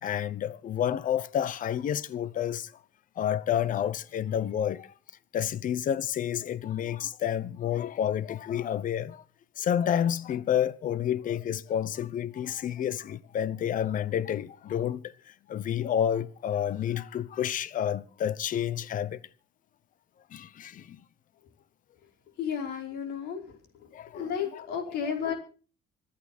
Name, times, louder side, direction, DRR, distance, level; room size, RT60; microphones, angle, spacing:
voice 1, 0.0-2.7 3.2-4.9 5.3-9.2 9.6-15.1 15.5-19.2 20.3-21.0 23.9-25.1, left 9 dB, 50° left, 1.0 m, -30 dB
voice 2, 22.4-23.4 24.1-25.3, left 7 dB, 75° left, 5.0 m, -32 dB
25.5 x 8.9 x 4.4 m
cardioid pair, 110°, 17 cm